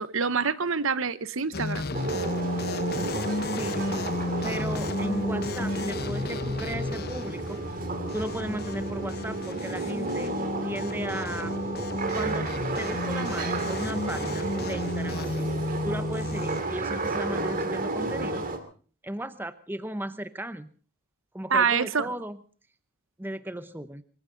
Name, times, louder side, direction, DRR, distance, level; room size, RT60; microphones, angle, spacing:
voice 1, 0.0-1.9 21.5-22.1, right 5 dB, 65° right, 15 dB, 0.9 m, -26 dB
sound 1, 1.5-16.6, left 2 dB, 45° left, 0.8 m, -33 dB
sound 2, 1.9-18.6, right 2 dB, 40° right, 2.5 m, -32 dB
voice 2, 3.5-4.0 4.4-7.6 8.1-10.3 10.6-11.5 12.1-15.5 15.8-18.5 19.0-20.7 21.3-22.4 23.2-24.0, right 1 dB, 10° right, 12 dB, 0.7 m, -36 dB
24.0 x 15.5 x 3.9 m, 0.41 s
head